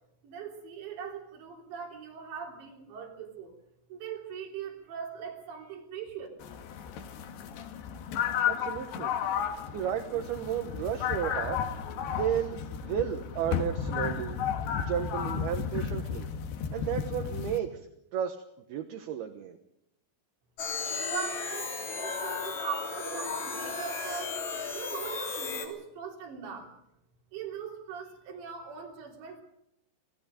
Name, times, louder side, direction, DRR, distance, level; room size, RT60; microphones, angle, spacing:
voice 1, 0.2-3.5 3.9-6.3 21.1-24.4 24.8-26.7 27.3-29.4, right 7 dB, 90° right, -2 dB, 5.7 m, -40 dB
sound 1, 6.4-17.6, left 8 dB, 75° left, 3.5 m, -33 dB
voice 2, 8.5-9.1 9.7-11.6 12.1-12.6 12.8-14.4 14.8-16.3 16.7-17.8 18.1-18.4 18.7-19.6, right 9 dB, 70° right, 5 dB, 3.0 m, -33 dB
sound 2, 20.6-25.7, left 4 dB, 45° left, 4.3 m, -34 dB
27.5 x 19.5 x 5.3 m, 0.76 s
omnidirectional pair, 4.9 m